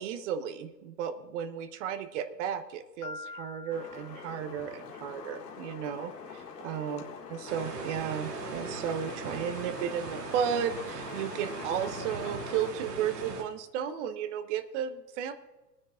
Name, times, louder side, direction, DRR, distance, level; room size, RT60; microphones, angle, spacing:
voice 1, 0.0-7.0 7.3-15.3, right 8 dB, 45° right, 9 dB, 1.0 m, -34 dB
Piano, 3.0-4.9, left 3 dB, 55° left, 2.5 m, -45 dB
sound 1, 3.7-12.7, left 6 dB, 75° left, 1.9 m, -44 dB
sound 2, 7.5-13.4, right 4 dB, 70° right, 2.7 m, -39 dB
22.5 x 9.5 x 2.4 m, 1.1 s
figure-of-eight pair, 100°, 49 cm